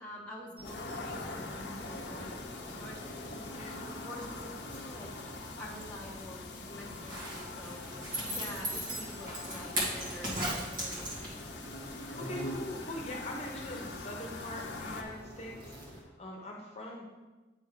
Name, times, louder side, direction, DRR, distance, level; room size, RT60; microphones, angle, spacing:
voice 1, 0.0-3.8 4.0-11.2, left 1 dB, 5° left, -5 dB, 1.1 m, -47 dB
sound 1, 0.6-15.0, left 3 dB, 70° left, 0.8 m, -44 dB
sound 2, 0.6-16.0, right 1 dB, 25° right, 1.6 m, -47 dB
voice 2, 3.4-3.8 8.7-8.8 12.1-17.1, left 1 dB, 35° left, -1 dB, 1.1 m, -42 dB
Zipper (clothing), 6.9-11.5 11.9-12.0, right 1 dB, 50° right, 1.9 m, -36 dB
9.2 x 3.6 x 4.8 m, 1.2 s
head